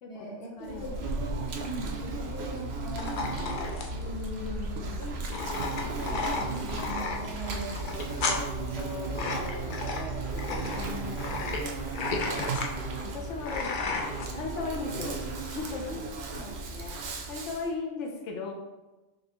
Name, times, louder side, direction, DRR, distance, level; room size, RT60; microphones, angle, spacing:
voice 1, 0.1-3.9 6.0-11.1 12.2-12.5 15.9-16.1 16.3-17.0, right 1 dB, 35° left, -3 dB, 1.1 m, -41 dB
voice 2, 0.6-1.0 3.9-5.0 10.5-11.4 13.0-14.0 14.3-16.0 17.0-18.5, left 4 dB, 85° left, 0 dB, 1.0 m, -37 dB
Insect, 0.6-17.7, right 3 dB, 65° right, 0.8 m, -35 dB
sound 1, 3.0-14.3, left 3 dB, 60° left, 0.6 m, -34 dB
4.1 x 3.2 x 2.9 m, 1.1 s
omnidirectional pair, 1.2 m